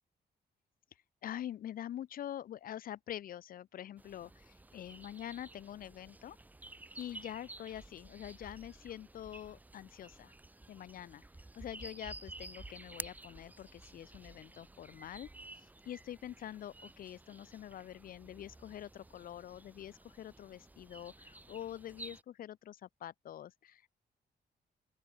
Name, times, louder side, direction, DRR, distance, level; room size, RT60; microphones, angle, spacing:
voice 1, 1.2-6.4 7.0-10.3 10.7-11.2 11.6-15.3 15.6-23.9, left 11 dB, 55° left, 0.5 m, -45 dB
sound 1, 4.0-22.2, right 2 dB, 10° right, 1.0 m, -52 dB
open air
wide cardioid pair, 170°, 17 cm